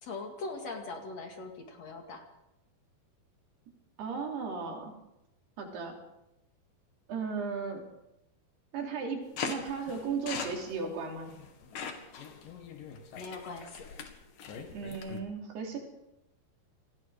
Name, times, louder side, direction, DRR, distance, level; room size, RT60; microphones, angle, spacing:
voice 1, 0.0-2.2 13.1-13.9, left 3 dB, 45° left, 4 dB, 3.1 m, -41 dB
voice 2, 4.0-4.9 5.6-6.0 7.1-7.8 8.7-11.3 14.7-15.8, right 5 dB, 85° right, 1 dB, 5.5 m, -36 dB
sound 1, 9.4-15.2, left 6 dB, 65° left, 3.4 m, -41 dB
28.0 x 18.5 x 5.0 m, 0.89 s
omnidirectional pair, 4.5 m